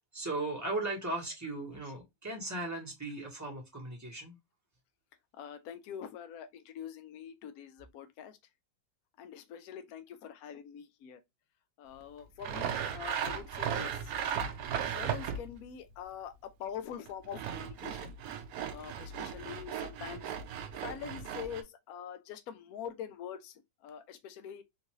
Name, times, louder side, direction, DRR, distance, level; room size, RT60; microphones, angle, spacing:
voice 1, 0.1-4.4, right 2 dB, 10° right, 1.0 m, -37 dB
voice 2, 5.4-8.4 9.2-11.2 11.8-14.1 15.0-18.1 18.7-20.4 20.8-24.6, left 8 dB, 75° left, 0.8 m, -44 dB
Sawing, 12.4-15.6 17.1-21.6, right 8 dB, 85° right, 0.8 m, -36 dB
3.8 x 2.5 x 3.0 m
omnidirectional pair, 2.1 m